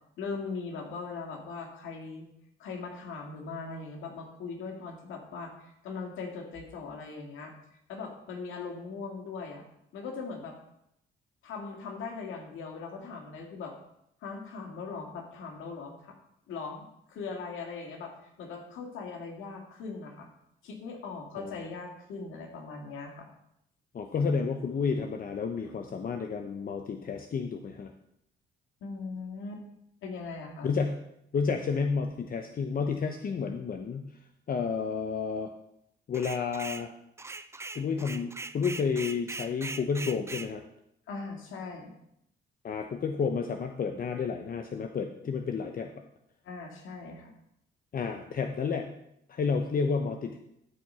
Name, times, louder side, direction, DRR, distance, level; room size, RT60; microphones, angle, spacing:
voice 1, 0.2-2.3 2.6-7.5 7.9-9.6 9.9-10.6 11.4-13.7 14.2-16.1 16.5-20.3 20.6-23.3 25.6-25.7 28.8-29.6 30.0-30.7 41.1-42.0 46.4-47.3, left 4 dB, 85° left, 2 dB, 2.1 m, -40 dB
voice 2, 23.9-27.9 30.6-31.0 31.3-34.1 34.5-35.5 36.1-36.9 37.7-40.6 42.6-45.9 47.9-48.9 49.3-50.4, left 5 dB, 45° left, 5 dB, 0.8 m, -31 dB
sound 1, 36.1-36.9 37.2-40.5, right 3 dB, 15° right, 0.5 m, -40 dB
14.0 x 4.8 x 5.6 m, 0.79 s
cardioid pair, 90°, 20 cm